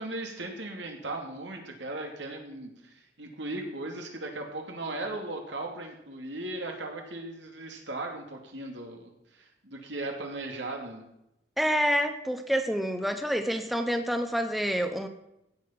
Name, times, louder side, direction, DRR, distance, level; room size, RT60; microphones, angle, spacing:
voice 1, 0.0-11.0, right 2 dB, 85° right, 2 dB, 2.6 m, -37 dB
voice 2, 11.6-15.1, equal, ahead, 7 dB, 0.8 m, -27 dB
15.5 x 7.4 x 5.9 m, 0.83 s
head